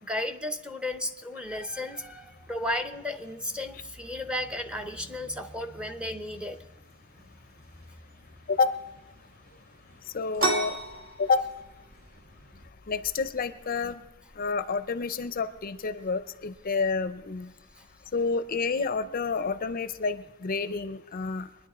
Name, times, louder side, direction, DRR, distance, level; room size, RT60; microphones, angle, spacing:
voice 1, 0.0-6.6 13.8-13.9, left 1 dB, 5° right, 6 dB, 0.6 m, -34 dB
sound 1, 1.6-12.7, equal, 70° right, 1.9 m, -54 dB
voice 2, 10.1-10.8 11.2-11.5 12.9-14.0 14.4-17.5 18.1-21.5, left 4 dB, 45° left, 12 dB, 0.5 m, -29 dB
sound 2, 10.4-19.8, right 2 dB, 40° right, 1.7 m, -38 dB
23.0 x 10.0 x 4.2 m, 1.0 s
head